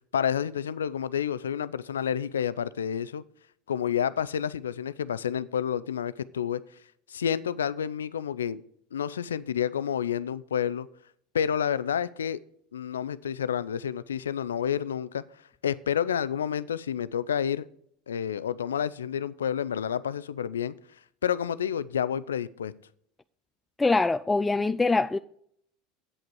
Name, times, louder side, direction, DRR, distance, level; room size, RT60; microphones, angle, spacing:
voice 1, 0.1-3.2 3.7-6.6 7.1-8.6 8.9-10.9 11.3-12.4 12.7-15.2 15.6-17.7 18.1-20.7 21.2-22.7, left 8 dB, 85° left, 0.4 m, -29 dB
voice 2, 23.8-25.2, left 3 dB, 15° left, 0.3 m, -23 dB
8.7 x 8.1 x 4.7 m
hypercardioid pair, 80°, 0 cm